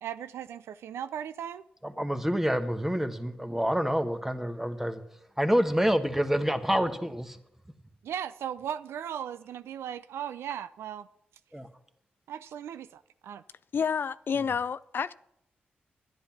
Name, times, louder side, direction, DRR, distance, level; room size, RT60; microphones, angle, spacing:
voice 1, 0.0-1.7 8.0-11.1 12.3-13.4, right 9 dB, 80° right, 0.4 m, -37 dB
voice 2, 1.8-5.0 5.4-7.4 11.5-11.7, equal, 10° right, 1.4 m, -27 dB
voice 3, 13.7-15.2, left 6 dB, 55° left, 0.4 m, -29 dB
10.5 x 10.0 x 5.8 m
supercardioid pair, 40°, 4 cm